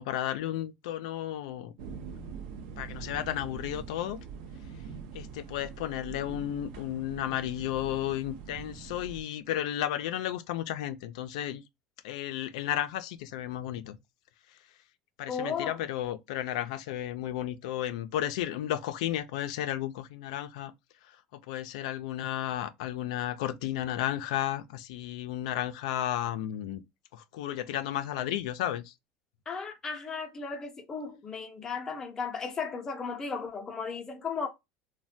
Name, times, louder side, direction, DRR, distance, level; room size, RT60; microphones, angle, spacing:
voice 1, 0.0-1.7 2.8-4.2 5.1-11.6 12.0-14.0 15.2-20.7 21.0-21.2 21.5-26.8 27.1-28.9, left 12 dB, 90° left, 0.4 m, -33 dB
sound 1, 1.8-9.2, right 6 dB, 75° right, 0.5 m, -43 dB
voice 2, 15.3-15.8 29.5-34.5, left 5 dB, 15° left, 0.5 m, -35 dB
3.2 x 2.1 x 2.6 m
cardioid pair, 165°, 3 cm